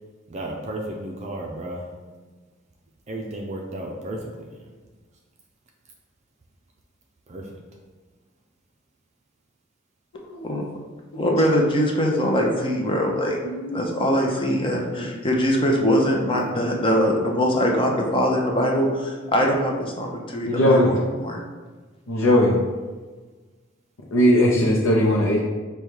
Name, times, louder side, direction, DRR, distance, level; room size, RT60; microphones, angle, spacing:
voice 1, 0.3-1.9 3.1-4.6 7.3-7.6, right 1 dB, 35° right, 0 dB, 0.4 m, -33 dB
voice 2, 11.1-13.4 13.7-21.4, equal, 25° left, 0 dB, 0.6 m, -22 dB
voice 3, 13.4-13.9 15.0-15.1 20.5-20.9 22.1-22.5 24.1-25.4, left 1 dB, 85° left, -2 dB, 0.6 m, -19 dB
5.1 x 2.3 x 4.6 m, 1.3 s
head